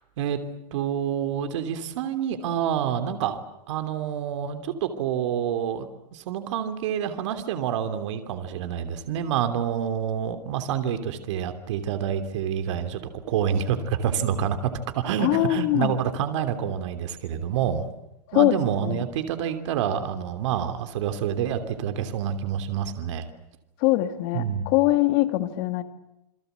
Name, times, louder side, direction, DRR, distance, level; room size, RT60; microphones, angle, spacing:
voice 1, 0.7-3.4 3.7-13.0 13.3-17.8 18.3-23.3 24.3-24.7, right 9 dB, 45° right, 9 dB, 3.0 m, -27 dB
voice 2, 15.2-15.9 18.3-19.0 23.8-25.8, left 17 dB, 35° left, 9 dB, 2.2 m, -23 dB
28.5 x 23.0 x 8.2 m, 0.89 s
supercardioid pair, 170°, 21 cm